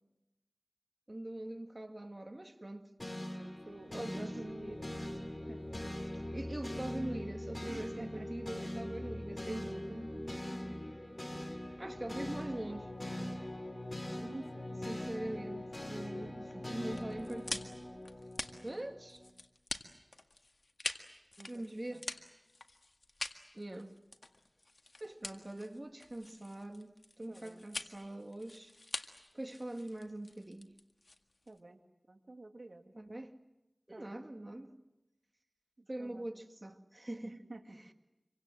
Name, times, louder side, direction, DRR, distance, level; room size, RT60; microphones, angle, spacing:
voice 1, 1.1-2.9 3.9-4.4 6.1-10.0 11.8-12.9 14.8-17.7 18.6-19.2 21.5-22.1 23.5-23.9 25.0-28.7 29.3-30.7 32.9-33.3 33.9-34.7 35.9-37.4 37.7-37.9, right 1 dB, 40° right, 2.1 m, -43 dB
sound 1, 3.0-19.3, left 1 dB, 35° left, 2.8 m, -42 dB
voice 2, 3.4-4.9 5.5-5.6 7.6-8.3 8.6-8.7 9.5-10.3 14.2-14.8 21.4-21.6 21.9-22.1 27.3-27.6 31.5-31.8 32.1-32.9 33.9-34.2 35.8-36.3 37.2-37.8, right 2 dB, 75° right, 2.3 m, -49 dB
sound 2, 16.9-31.6, left 2 dB, 70° left, 1.8 m, -45 dB
27.0 x 24.5 x 7.8 m
wide cardioid pair, 40°, 0 cm